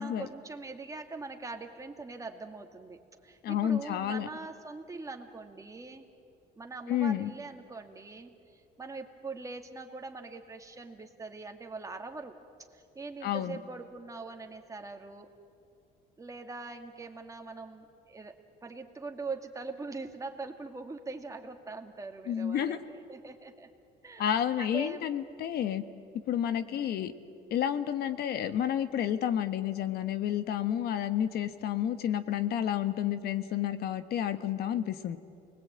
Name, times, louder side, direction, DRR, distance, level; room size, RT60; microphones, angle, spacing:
voice 1, 0.0-6.1 6.6-12.3 12.7-15.3 16.2-23.7 24.0-24.3 24.6-25.1 26.3-26.9, right 3 dB, 20° right, 4 dB, 2.3 m, -42 dB
voice 2, 3.4-4.3 6.9-7.3 13.2-13.6 22.3-22.8 24.2-25.8 26.3-27.1 27.5-35.2, left 10 dB, 70° left, 10 dB, 1.4 m, -30 dB
28.5 x 20.5 x 8.9 m, 2.5 s
cardioid pair, 110°, 17 cm